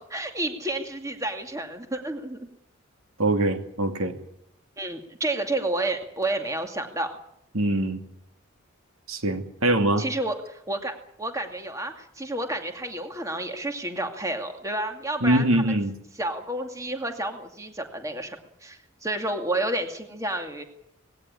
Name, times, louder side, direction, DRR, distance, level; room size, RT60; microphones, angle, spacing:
voice 1, 0.0-2.5 4.8-7.1 10.0-10.9 11.2-15.4 16.2-20.6, right 1 dB, 15° right, 4 dB, 2.3 m, -30 dB
voice 2, 3.2-4.1 7.5-8.0 9.1-10.1 15.2-16.0, right 1 dB, 75° right, 6 dB, 2.5 m, -23 dB
19.5 x 17.0 x 9.8 m, 0.74 s
head